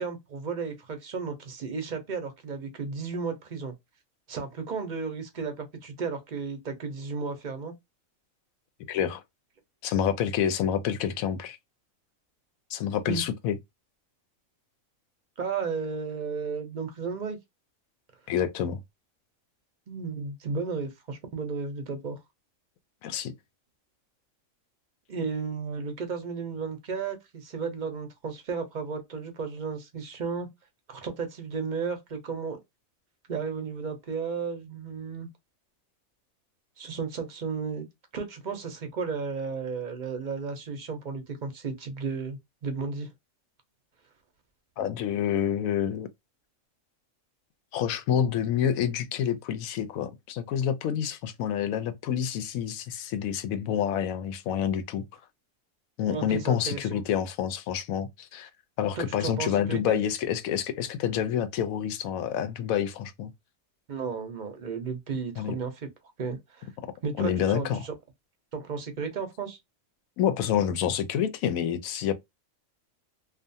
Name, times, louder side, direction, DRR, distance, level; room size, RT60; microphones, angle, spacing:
voice 1, 0.0-3.7 4.3-7.7 13.0-13.2 15.4-17.4 19.9-22.2 25.1-30.5 30.9-32.6 33.3-35.3 36.8-37.9 38.1-43.1 56.1-57.0 59.0-60.0 63.9-65.9 66.2-66.7 67.0-67.9 68.5-69.6, right 5 dB, 50° right, 0.6 m, -34 dB
voice 2, 8.9-9.2 9.8-11.6 12.7-13.6 18.3-18.8 23.0-23.3 44.8-46.1 47.7-55.1 56.0-58.5 58.8-63.3 65.4-65.6 67.2-67.8 70.2-72.1, left 9 dB, 85° left, 1.0 m, -28 dB
2.5 x 2.4 x 2.6 m
omnidirectional pair, 1.4 m